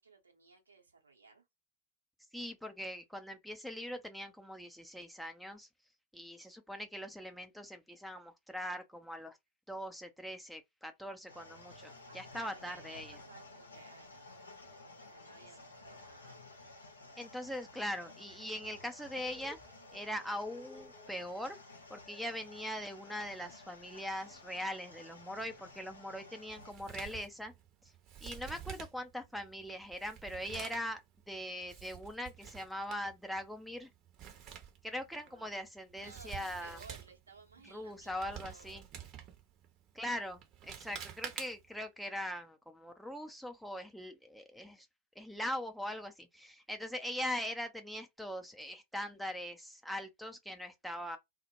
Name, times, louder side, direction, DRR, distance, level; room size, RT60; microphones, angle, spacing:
voice 1, 0.0-1.4 12.1-14.4 14.8-16.4 35.1-35.6 36.0-38.8, right 4 dB, 75° right, 0.7 m, -58 dB
voice 2, 2.3-5.7 6.1-9.4 9.7-13.2 17.2-19.6 19.9-21.6 21.9-27.5 28.2-31.0 31.3-33.9 34.8-36.8 37.7-38.9 39.9-44.9 45.2-51.2, equal, ahead, 0.4 m, -41 dB
sound 1, 11.3-26.7, left 2 dB, 75° left, 0.6 m, -54 dB
sound 2, 19.1-26.5, left 2 dB, 20° left, 0.8 m, -61 dB
Male speech man speaking, 26.5-41.8, right 9 dB, 35° right, 0.7 m, -50 dB
2.1 x 2.1 x 2.8 m
figure-of-eight pair, 90°, 0 cm